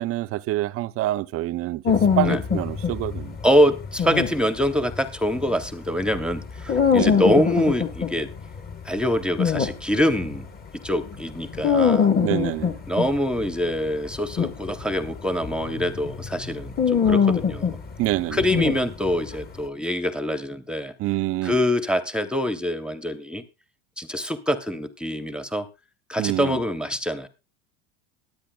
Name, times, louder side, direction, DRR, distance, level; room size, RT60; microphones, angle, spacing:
voice 1, 0.0-3.4 6.9-7.2 12.2-12.8 18.0-18.4 21.0-21.5 26.2-26.6, right 16 dB, 40° right, 0.5 m, -26 dB
sound 1, 1.9-10.4 11.0-19.4, left 7 dB, 25° left, 1.2 m, -24 dB
voice 2, 3.4-8.3 8.8-10.5 10.8-12.1 12.9-17.8 18.3-20.9 21.4-23.4 24.0-25.7 26.1-27.3, equal, 5° right, 0.8 m, -24 dB
23.0 x 8.5 x 2.3 m
supercardioid pair, 110°, 35 cm